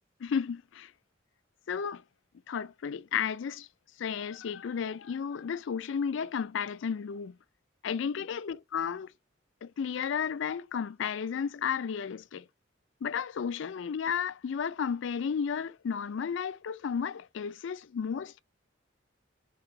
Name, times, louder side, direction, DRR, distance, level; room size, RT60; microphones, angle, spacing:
voice 1, 0.2-0.9 1.7-2.0 2.5-3.7 4.0-7.4 7.8-9.1 9.6-12.5 13.0-18.4, left 7 dB, 70° left, 0.4 m, -33 dB
4.7 x 3.4 x 3.2 m
head